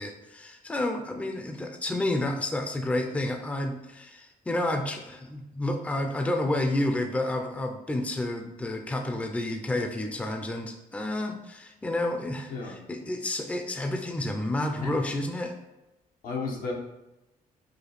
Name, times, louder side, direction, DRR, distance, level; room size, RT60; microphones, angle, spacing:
voice 1, 0.0-12.5 12.9-15.5, left 1 dB, 10° left, 4 dB, 0.4 m, -30 dB
voice 2, 16.2-16.7, left 4 dB, 85° left, -2 dB, 0.9 m, -32 dB
4.8 x 2.3 x 3.1 m, 0.97 s
cardioid pair, 100°, 14 cm